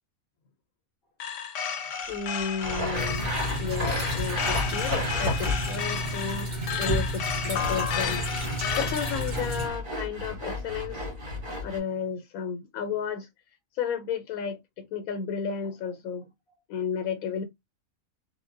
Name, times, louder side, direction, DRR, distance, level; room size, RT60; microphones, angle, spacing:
sound 1, 1.2-9.3, left 8 dB, 70° left, 0.8 m, -33 dB
voice 1, 2.1-3.3 3.6-6.5 6.8-11.1 11.6-13.3 13.8-16.3 16.7-17.4, left 7 dB, 90° left, 1.0 m, -33 dB
Sawing, 2.6-5.8 7.2-11.8, left 2 dB, 70° right, 1.8 m, -33 dB
sound 2, 2.9-9.7, right 1 dB, 45° right, 1.3 m, -32 dB
3.4 x 2.1 x 2.4 m
omnidirectional pair, 1.5 m